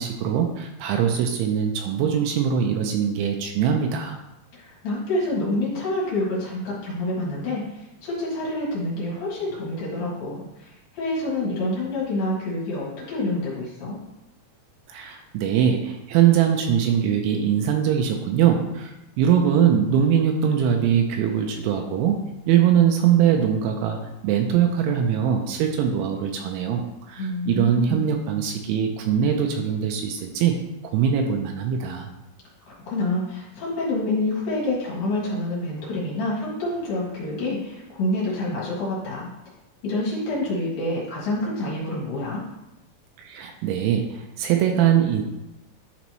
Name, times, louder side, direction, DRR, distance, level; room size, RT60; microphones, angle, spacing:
voice 1, 0.0-4.2 14.9-22.2 22.5-24.0 24.2-26.8 27.1-30.5 30.9-32.1 43.2-45.2, right 8 dB, 85° right, 3 dB, 2.9 m, -22 dB
voice 2, 4.5-14.0 27.2-28.1 32.7-39.3 39.8-42.4, left 2 dB, 55° left, -6 dB, 3.1 m, -27 dB
11.5 x 4.1 x 3.0 m, 0.93 s
omnidirectional pair, 5.6 m